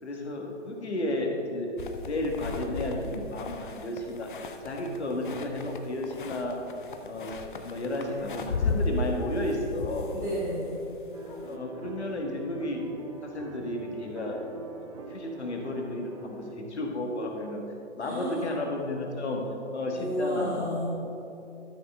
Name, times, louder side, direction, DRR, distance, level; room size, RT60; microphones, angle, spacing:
voice 1, 0.0-1.8 2.0-4.3 4.6-6.6 7.0-10.1 11.4-12.8 13.2-14.5 14.8-17.6 17.9-19.4 19.7-20.8, left 1 dB, 65° left, 1 dB, 1.8 m, -33 dB
sound 1, 1.8-11.6, left 3 dB, 45° left, 0.7 m, -36 dB
voice 2, 10.1-10.9 18.0-18.6 19.9-20.9, equal, 5° right, -13 dB, 1.7 m, -32 dB
sound 2, 11.1-16.5, right 3 dB, 25° right, 0.5 m, -43 dB
12.5 x 6.4 x 3.7 m, 2.9 s
figure-of-eight pair, 130°, 37 cm